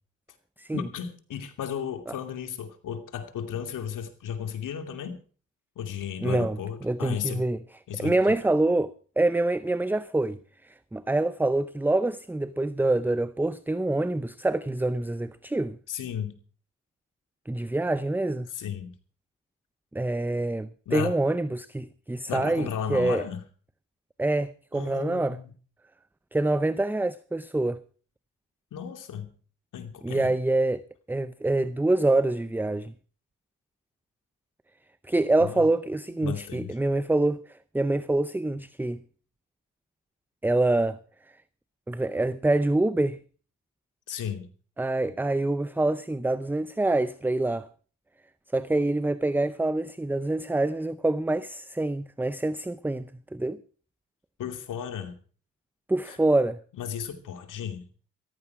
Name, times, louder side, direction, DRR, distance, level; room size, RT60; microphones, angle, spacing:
voice 1, 0.7-5.2 5.8-7.4 7.9-8.4 15.9-16.4 18.5-18.9 20.9-21.2 22.3-23.4 24.7-25.5 28.7-29.3 29.7-30.3 35.4-35.7 36.2-36.8 44.1-44.5 54.4-55.2 56.0-56.2 56.7-57.9, left 8 dB, 80° left, 2.7 m, -34 dB
voice 2, 6.2-6.6 6.8-7.6 8.0-10.4 10.6-15.8 17.5-18.5 19.9-23.2 24.2-25.4 26.3-27.8 30.0-30.8 31.1-32.9 35.1-39.0 40.4-41.0 41.9-43.2 44.8-47.7 48.5-53.6 55.9-56.6, right 2 dB, 5° right, 0.6 m, -26 dB
15.0 x 14.5 x 4.8 m
cardioid pair, 80°, 31 cm